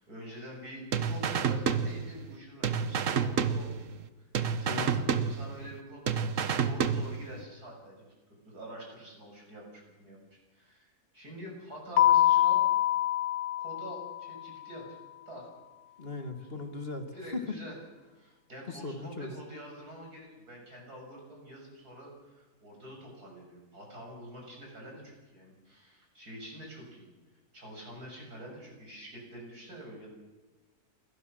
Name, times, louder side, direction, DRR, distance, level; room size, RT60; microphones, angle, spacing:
voice 1, 0.0-3.9 4.2-4.3 4.7-10.2 10.5-12.6 13.6-15.0 15.3-15.5 16.4-16.5 17.1-17.8 18.2-27.1 27.5-30.1, equal, 80° right, 0 dB, 7.1 m, -46 dB
sound 1, 0.9-2.4 2.6-4.1 4.3-5.8 6.1-7.4, right 6 dB, 60° right, 1.3 m, -30 dB
Keyboard (musical), 12.0-14.5, left 12 dB, 85° left, 1.6 m, -25 dB
voice 2, 16.0-17.5 18.7-19.3, left 3 dB, 40° left, 6 dB, 1.9 m, -37 dB
28.5 x 12.5 x 7.6 m, 1.2 s
omnidirectional pair, 1.6 m